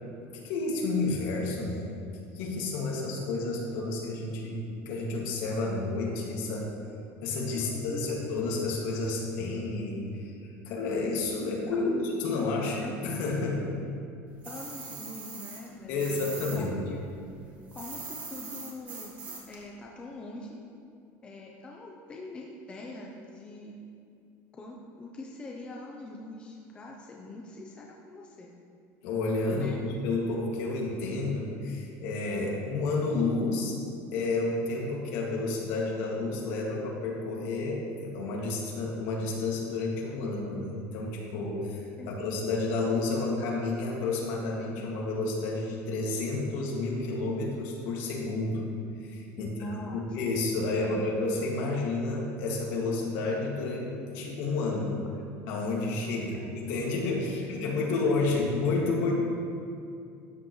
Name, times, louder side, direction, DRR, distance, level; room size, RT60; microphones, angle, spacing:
voice 1, 0.2-1.9 2.3-6.7 7.2-12.8 13.0-13.7 15.9-16.8 29.0-33.8 34.1-48.6 49.0-49.5 49.9-55.0 55.5-59.1, left 3 dB, 60° left, -2 dB, 2.2 m, -30 dB
voice 2, 7.5-8.2 11.7-12.9 14.4-17.0 17.7-19.2 19.5-20.6 21.2-23.8 24.5-28.5 29.5-29.8 42.0-42.1 49.4-50.0 50.8-51.1 56.1-58.2, left 2 dB, 15° left, -1 dB, 0.7 m, -42 dB
sound 1, 14.4-16.6 16.9-19.6, right 4 dB, 25° right, 1.5 m, -41 dB
13.0 x 9.5 x 3.2 m, 2.5 s
cardioid pair, 175°, 7 cm